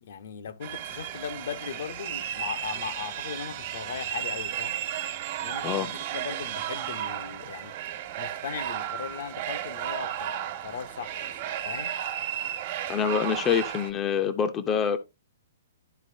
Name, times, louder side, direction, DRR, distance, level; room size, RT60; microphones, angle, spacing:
voice 1, 0.0-4.8 5.4-7.8 8.2-11.3 11.6-11.9, left 7 dB, 65° left, 0.9 m, -38 dB
sound 1, 0.6-13.9, right 11 dB, 45° right, 1.4 m, -34 dB
voice 2, 12.9-15.0, left 7 dB, 20° left, 0.7 m, -26 dB
12.0 x 4.1 x 2.7 m
hypercardioid pair, 145°, 0 cm